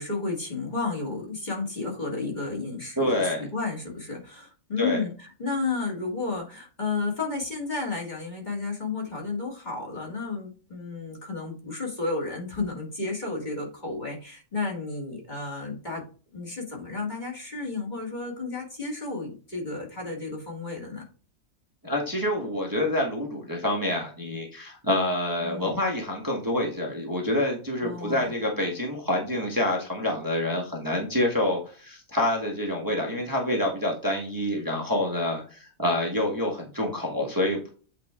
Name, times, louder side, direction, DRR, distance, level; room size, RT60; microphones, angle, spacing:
voice 1, 0.0-16.0 16.3-21.0 25.4-25.8 27.8-28.3, left 3 dB, 30° left, -2 dB, 2.6 m, -32 dB
voice 2, 3.0-3.5 4.8-5.0 21.8-37.7, left 1 dB, 15° right, -1 dB, 1.4 m, -27 dB
8.4 x 4.2 x 3.5 m, 0.36 s
omnidirectional pair, 1.4 m